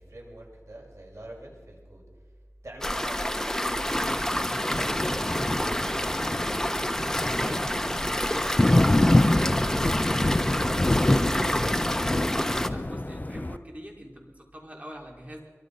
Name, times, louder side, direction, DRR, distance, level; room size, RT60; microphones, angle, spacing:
voice 1, 0.0-2.1 2.6-11.9, right 1 dB, 75° right, -1 dB, 6.5 m, -47 dB
sound 1, 2.8-12.7, equal, 10° left, 1.2 m, -28 dB
Thunder, 3.9-13.6, left 1 dB, 35° left, 0.8 m, -26 dB
voice 2, 12.7-15.4, equal, 30° right, 0 dB, 5.1 m, -44 dB
24.0 x 24.0 x 5.6 m, 1.5 s
wide cardioid pair, 50°, 5 cm